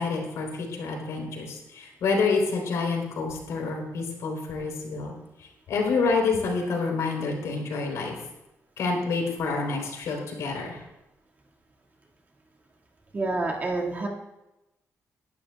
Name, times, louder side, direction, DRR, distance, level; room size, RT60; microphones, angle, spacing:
voice 1, 0.0-5.1 5.7-8.2 8.8-10.8, left 4 dB, 85° left, 0 dB, 3.7 m, -28 dB
voice 2, 13.1-14.1, right 2 dB, 30° right, 0 dB, 2.0 m, -28 dB
19.0 x 11.5 x 2.3 m, 0.96 s
cardioid pair, 130°, 5 cm